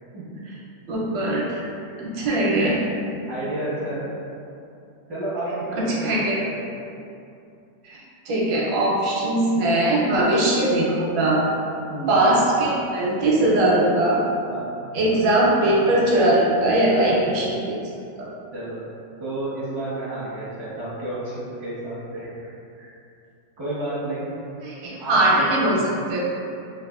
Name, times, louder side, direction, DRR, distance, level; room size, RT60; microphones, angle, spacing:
voice 1, 0.9-1.6 2.2-2.8 6.0-6.5 7.9-11.4 12.1-14.2 14.9-17.8 18.2-18.3 24.6-25.8 26.1-26.2, right 1 dB, 85° right, -5 dB, 1.3 m, -20 dB
voice 2, 3.3-4.1 5.1-6.7 11.9-12.2 14.5-14.7 16.9-17.3 18.5-18.8 19.2-22.5 22.8-22.9 23.6-24.3 25.0-25.8, right 1 dB, 30° right, -10 dB, 0.4 m, -31 dB
3.3 x 2.3 x 2.4 m, 2.6 s
omnidirectional pair, 1.9 m